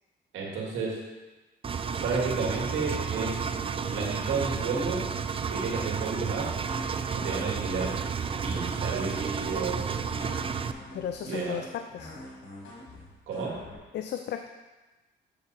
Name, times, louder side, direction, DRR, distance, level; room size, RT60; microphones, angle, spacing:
voice 1, 0.3-1.0 2.0-3.5 3.9-5.1 5.5-6.5 7.1-7.9 8.4-10.4 11.3-11.6 13.3-13.6, right 4 dB, 80° right, -2 dB, 2.0 m, -32 dB
Engine, 1.6-10.7, right 6 dB, 30° right, 0.4 m, -31 dB
sound 1, 6.6-13.8, left 1 dB, 85° left, 2.3 m, -45 dB
voice 2, 10.9-12.1 13.9-14.5, left 9 dB, 60° left, 6 dB, 0.5 m, -35 dB
6.9 x 6.7 x 4.1 m, 1.2 s
cardioid pair, 90°, 20 cm